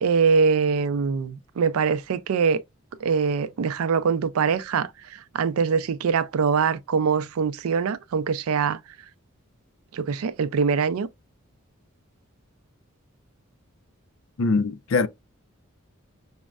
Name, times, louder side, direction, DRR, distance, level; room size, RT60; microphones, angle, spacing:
voice 1, 0.0-2.6 3.0-8.8 9.9-11.1, right 5 dB, 90° right, 0.4 m, -23 dB
voice 2, 14.4-15.1, left 4 dB, 70° left, 0.4 m, -22 dB
6.1 x 2.1 x 2.3 m
head